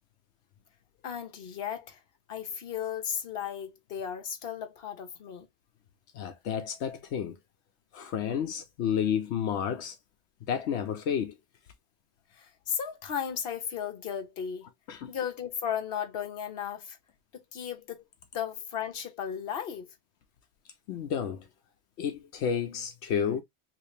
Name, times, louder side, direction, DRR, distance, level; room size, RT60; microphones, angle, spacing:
voice 1, 1.0-2.0 2.3-5.5 12.3-14.7 15.1-17.0 17.3-18.0 18.3-19.9, left 8 dB, 65° left, 1.1 m, -35 dB
voice 2, 6.1-7.4 7.9-10.0 10.5-11.4 14.9-15.1 20.9-21.5 22.0-23.4, left 8 dB, 85° left, 1.0 m, -31 dB
3.2 x 2.8 x 3.1 m
omnidirectional pair, 1.1 m